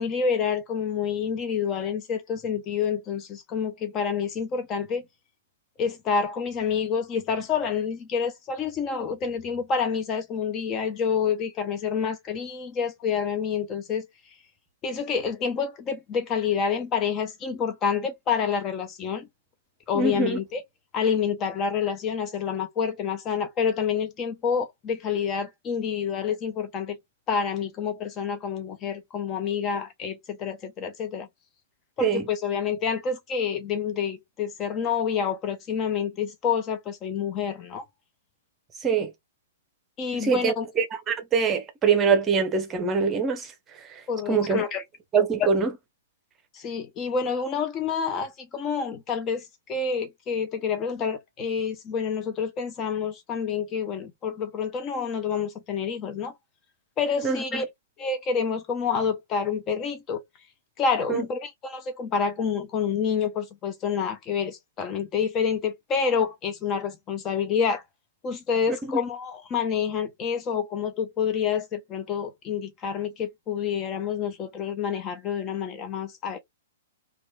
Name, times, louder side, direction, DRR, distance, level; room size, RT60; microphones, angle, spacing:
voice 1, 0.0-5.0 5.8-14.1 14.8-19.3 19.9-20.6 20.9-27.0 27.3-31.3 32.0-37.8 40.0-40.7 44.1-44.8 45.4-45.5 46.5-56.3 57.0-57.6 58.0-60.2 60.8-67.8 68.2-76.4, left 6 dB, 25° left, 0.5 m, -28 dB
voice 2, 19.9-20.4 32.0-32.2 38.8-39.1 40.2-43.5 43.8-44.0 44.3-44.6 45.1-45.7 57.2-57.6 61.1-61.2 68.8-69.0, right 5 dB, 20° right, 0.8 m, -24 dB
3.0 x 2.3 x 2.2 m
figure-of-eight pair, 110°, 0 cm